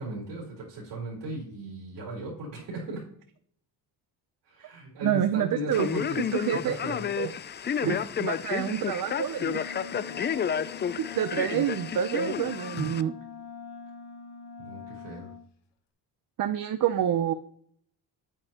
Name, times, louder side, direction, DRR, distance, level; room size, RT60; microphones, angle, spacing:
voice 1, 0.0-3.0 4.4-6.2 6.5-7.1 7.8-8.0 14.6-15.3, right 1 dB, 90° right, -3 dB, 3.8 m, -37 dB
voice 2, 5.0-5.9 6.3-6.7 7.2-7.3 7.9-8.0 8.2-9.7 11.0-13.1 16.4-17.3, right 10 dB, 50° right, 9 dB, 0.7 m, -27 dB
Male speech man speaking, 5.7-13.0, left 8 dB, 25° left, 0.4 m, -31 dB
Wind instrument woodwind instrument, 9.4-15.5, left 5 dB, 70° left, 1.2 m, -43 dB
9.1 x 8.6 x 2.9 m, 0.64 s
cardioid pair, 90°, 42 cm